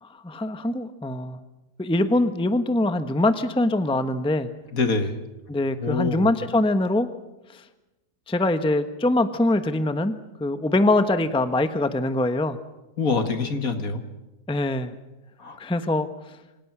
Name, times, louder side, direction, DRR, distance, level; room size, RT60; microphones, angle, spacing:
voice 1, 0.0-1.4 1.8-4.5 5.5-7.1 7.5-7.6 8.3-10.1 10.4-12.6 14.5-14.9 15.6-16.1, left 2 dB, 5° left, 10 dB, 1.0 m, -23 dB
voice 2, 4.7-5.1 5.8-6.3 13.0-14.0 15.4-15.6, left 4 dB, 60° left, 8 dB, 2.3 m, -25 dB
28.0 x 25.0 x 6.2 m, 1.0 s
omnidirectional pair, 1.7 m